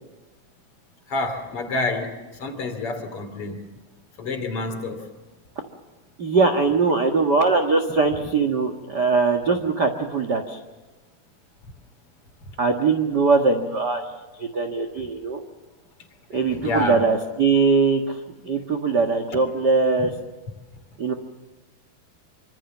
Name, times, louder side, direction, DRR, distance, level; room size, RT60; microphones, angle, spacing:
voice 1, 1.1-2.1 2.4-3.6 4.2-5.0 16.3-17.1, left 2 dB, 40° left, 6 dB, 3.3 m, -28 dB
voice 2, 6.2-10.6 12.6-14.1 14.4-15.4 16.3-18.2 18.4-20.1 21.0-21.1, right 4 dB, 45° right, 4 dB, 1.4 m, -21 dB
25.5 x 25.5 x 7.3 m, 1.2 s
omnidirectional pair, 4.2 m